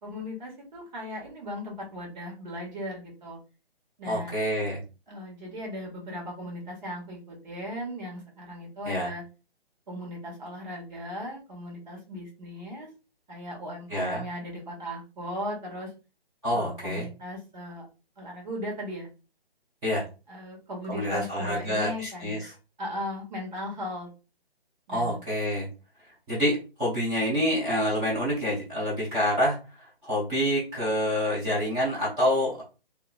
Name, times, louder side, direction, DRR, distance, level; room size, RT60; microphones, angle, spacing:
voice 1, 0.0-3.4 4.0-4.3 5.1-9.2 9.9-12.9 13.3-15.9 16.5-17.9 18.2-19.1 20.3-22.4 22.8-24.1 24.9-25.2, left 1 dB, 45° right, -1 dB, 2.0 m, -37 dB
voice 2, 4.1-4.8 8.9-9.1 13.9-14.2 16.4-17.1 19.8-20.0 20.9-22.5 24.9-25.7 26.3-32.6, equal, 10° right, -8 dB, 1.1 m, -27 dB
3.7 x 2.9 x 2.4 m, 0.32 s
figure-of-eight pair, 140°, 31 cm